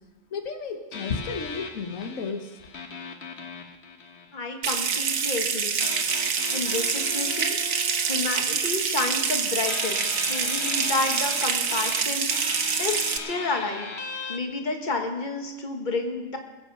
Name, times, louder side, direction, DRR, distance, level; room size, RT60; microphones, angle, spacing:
voice 1, 0.3-2.6, left 5 dB, 85° left, 6 dB, 1.5 m, -32 dB
sound 1, 0.9-4.8 5.8-9.3 9.6-14.4, left 4 dB, 55° left, 1.4 m, -37 dB
voice 2, 4.3-5.9 6.2-7.7 8.0-13.9 14.3-16.4, left 3 dB, 35° left, 3 dB, 1.6 m, -30 dB
Water tap faucet / Sink (filling or washing) / Trickle dribble, 4.6-13.2, right 6 dB, 80° right, 1.4 m, -26 dB
22.0 x 7.8 x 5.5 m, 1.1 s
omnidirectional pair, 1.4 m